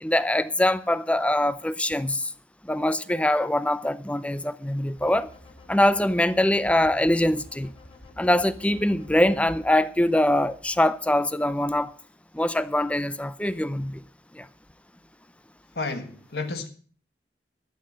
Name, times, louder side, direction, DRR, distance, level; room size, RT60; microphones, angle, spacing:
voice 1, 0.0-2.3 2.6-5.3 5.7-7.7 8.2-11.9 12.3-14.0 14.3-14.5, left 1 dB, 5° left, 0.6 m, -23 dB
sound 1, 5.0-9.4, left 2 dB, 35° left, 2.1 m, -50 dB
sound 2, 6.4-9.8 10.1-10.2, left 1 dB, 80° left, 2.5 m, -47 dB
voice 2, 15.7-16.7, left 3 dB, 65° left, 1.5 m, -31 dB
13.0 x 7.6 x 7.7 m
head